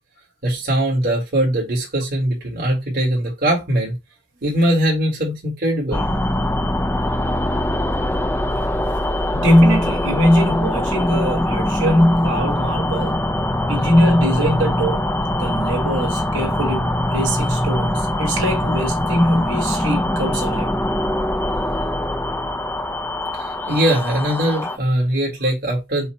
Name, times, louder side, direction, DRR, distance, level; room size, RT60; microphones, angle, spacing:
voice 1, 0.4-4.0 4.4-6.1 23.3-26.1, right 1 dB, 50° right, 1.6 m, -21 dB
sound 1, 5.9-24.8, left 1 dB, 10° left, 0.4 m, -22 dB
voice 2, 9.3-13.2 13.7-15.1 15.4-20.7, equal, 75° right, 2.0 m, -20 dB
5.5 x 2.2 x 4.3 m
head